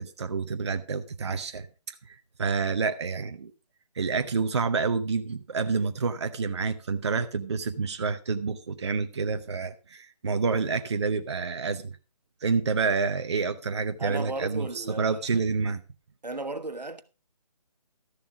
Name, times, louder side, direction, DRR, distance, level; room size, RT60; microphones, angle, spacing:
voice 1, 0.0-1.7 2.1-3.5 4.0-11.9 12.4-15.8, right 4 dB, 45° right, 0.7 m, -28 dB
voice 2, 14.0-15.4 16.2-17.0, right 2 dB, 85° right, 1.2 m, -35 dB
13.0 x 7.1 x 4.8 m
figure-of-eight pair, 155°, 21 cm